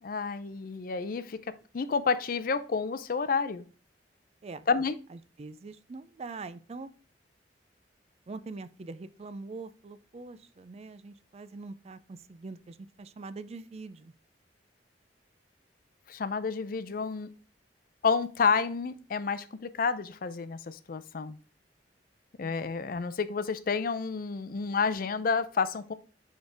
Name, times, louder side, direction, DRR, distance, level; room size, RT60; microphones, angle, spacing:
voice 1, 0.0-3.6 4.7-5.0 16.1-17.3 18.0-21.4 22.4-25.9, left 5 dB, 55° left, 13 dB, 0.5 m, -30 dB
voice 2, 5.1-6.9 8.3-14.1 22.4-22.8, right 3 dB, 35° right, 14 dB, 0.4 m, -43 dB
6.3 x 5.2 x 3.4 m, 0.38 s
head